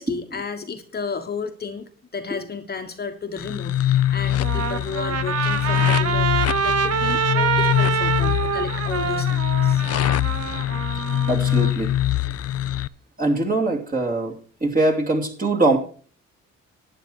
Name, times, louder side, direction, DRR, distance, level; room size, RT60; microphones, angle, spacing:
voice 1, 0.0-9.8, left 5 dB, 35° left, 6 dB, 1.2 m, -33 dB
sound 1, 3.4-12.9, left 12 dB, 55° left, 0.5 m, -23 dB
Trumpet, 4.3-11.7, right 7 dB, 55° right, 0.9 m, -26 dB
voice 2, 10.9-11.9 13.2-15.8, right 2 dB, 30° right, 0 dB, 2.9 m, -22 dB
11.5 x 9.1 x 4.5 m, 0.41 s
cardioid pair, 90°, 30 cm